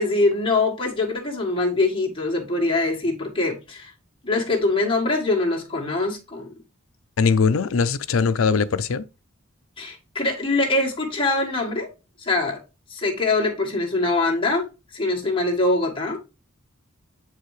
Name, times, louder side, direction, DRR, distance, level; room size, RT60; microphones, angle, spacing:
voice 1, 0.0-3.9 4.2-6.5 9.8-11.9 12.2-12.6 12.9-16.2, left 2 dB, 25° left, 1.6 m, -23 dB
voice 2, 7.2-9.0, left 5 dB, 85° left, 0.5 m, -20 dB
7.6 x 4.7 x 3.2 m
head